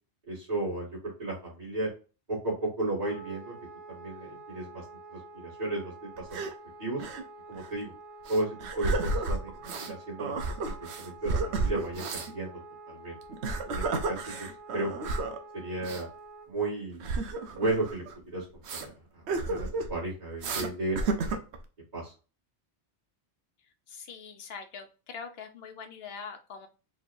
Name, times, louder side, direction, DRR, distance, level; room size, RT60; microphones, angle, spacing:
voice 1, 0.3-1.9 2.3-3.5 3.9-4.8 5.1-6.4 6.8-7.0 7.5-7.9 8.3-12.6 12.9-13.2 13.6-15.1 15.5-16.1 16.5-17.1 17.5-21.4 21.9-22.1, right 2 dB, 40° right, -10 dB, 2.4 m, -34 dB
Wind instrument woodwind instrument, 3.0-16.5, right 3 dB, 25° right, 0.9 m, -48 dB
sound 1, 6.2-6.5 7.0-7.2 7.5-7.7 8.3-9.9 10.2-12.3 13.2-15.4 15.8-16.0 17.0-18.1 18.6-18.9 19.3-19.9 20.4-20.7 21.0-21.6, right 3 dB, 75° right, 1.0 m, -32 dB
voice 2, 23.9-26.7, left 5 dB, 65° left, 6 dB, 1.0 m, -43 dB
4.4 x 3.3 x 2.6 m, 0.33 s
omnidirectional pair, 1.2 m